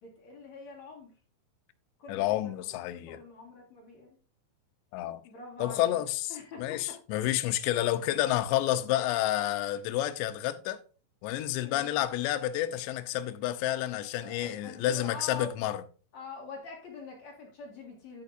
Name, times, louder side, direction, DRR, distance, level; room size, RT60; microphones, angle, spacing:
voice 1, 0.0-1.1 2.0-2.8 3.1-4.2 5.2-7.0 11.6-12.0 14.0-15.6 16.1-18.2, left 3 dB, 50° left, 2.5 m, -45 dB
voice 2, 2.1-3.2 4.9-5.2 5.6-6.3 6.6-10.8 11.2-15.8, left 13 dB, 80° left, 2.7 m, -29 dB
10.5 x 9.6 x 2.6 m
omnidirectional pair, 5.6 m